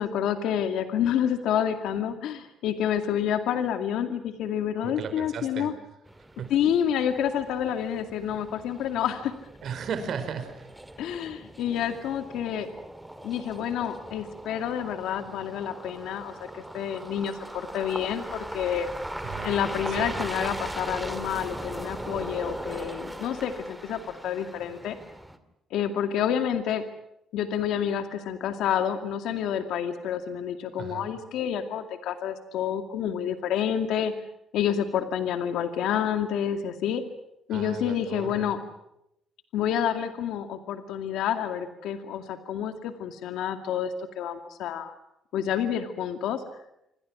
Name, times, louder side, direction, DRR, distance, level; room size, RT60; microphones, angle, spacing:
voice 1, 0.0-5.7 6.5-9.3 11.0-12.7 13.2-18.9 19.4-25.0 25.7-26.8 27.3-34.1 34.5-37.0 37.5-38.6 39.5-44.9 45.3-46.4, left 9 dB, 85° left, 7 dB, 2.3 m, -28 dB
voice 2, 4.8-5.7 6.4-6.6 9.6-10.7 19.2-19.5 19.9-20.6 30.8-31.2 37.5-38.5, right 7 dB, 55° right, 8 dB, 4.8 m, -36 dB
sound 1, 6.1-25.4, right 1 dB, 5° right, 2.2 m, -39 dB
27.5 x 25.5 x 6.2 m, 0.83 s
cardioid pair, 140°, 0 cm